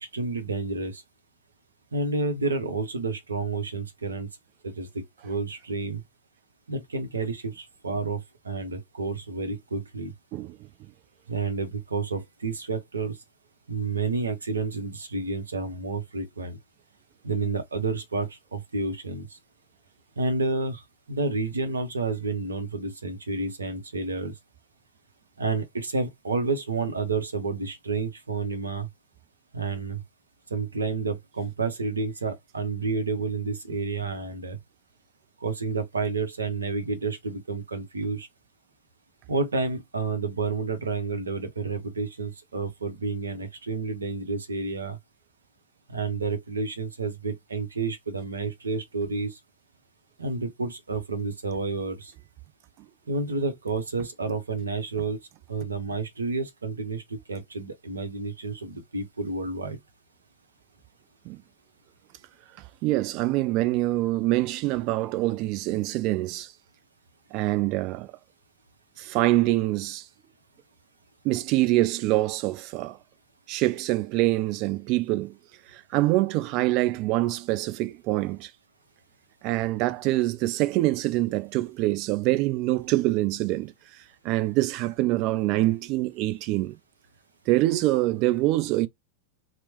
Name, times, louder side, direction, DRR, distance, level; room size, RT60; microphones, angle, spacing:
voice 1, 0.1-1.0 1.9-4.3 4.8-6.0 6.7-10.1 11.3-13.1 13.7-16.6 17.2-19.3 20.2-20.8 21.1-24.3 25.4-28.9 29.5-30.0 30.5-34.6 35.4-38.3 39.3-45.0 45.9-49.3 50.2-52.1 53.1-55.2 55.5-57.0 57.3-59.8, right 4 dB, 75° right, 0.6 m, -30 dB
voice 2, 62.8-66.5 67.3-68.1 69.0-70.1 71.2-73.0 73.5-75.4 75.7-78.5 79.4-83.7 84.2-86.8 87.5-88.9, right 17 dB, 40° right, 0.3 m, -25 dB
2.8 x 2.0 x 2.9 m
figure-of-eight pair, 90°, 0 cm